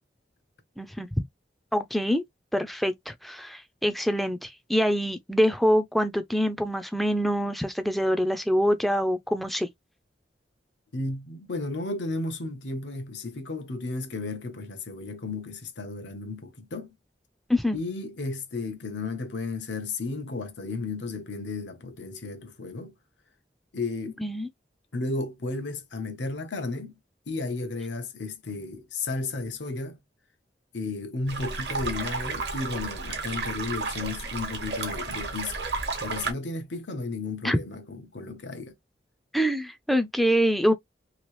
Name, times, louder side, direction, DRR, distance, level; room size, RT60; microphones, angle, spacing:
voice 1, 0.8-1.1 1.7-2.2 2.5-9.7 17.5-17.8 24.2-24.5 37.4-37.6 39.3-40.7, equal, ahead, 0.3 m, -25 dB
voice 2, 10.9-16.9 17.7-22.9 23.7-24.2 24.9-26.9 27.3-30.0 30.7-35.6 36.0-38.7, left 3 dB, 90° left, 0.9 m, -33 dB
sound 1, 31.3-36.3, right 4 dB, 70° right, 1.0 m, -32 dB
3.0 x 2.7 x 3.0 m
head